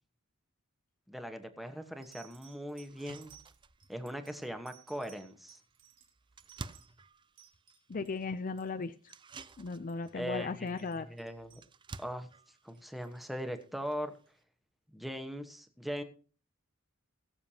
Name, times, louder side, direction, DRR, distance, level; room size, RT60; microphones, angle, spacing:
voice 1, 1.1-3.3 3.9-5.6 10.1-10.5 11.0-11.5 12.0-12.3 12.6-14.1 14.9-16.0, equal, ahead, 7 dB, 1.1 m, -40 dB
sound 1, 1.2-1.5 2.0-8.2 8.5-9.2 9.5-9.6 9.9-10.1 10.5-12.1 12.7-13.4 14.3-14.4, right 11 dB, 65° right, 2.9 m, -60 dB
sound 2, 1.8-1.9 2.3-2.4 2.8-14.4, right 3 dB, 20° right, 0.4 m, -53 dB
voice 2, 7.9-9.1 9.6-11.1, left 4 dB, 40° left, 10 dB, 0.5 m, -37 dB
21.5 x 7.2 x 2.8 m, 0.39 s
head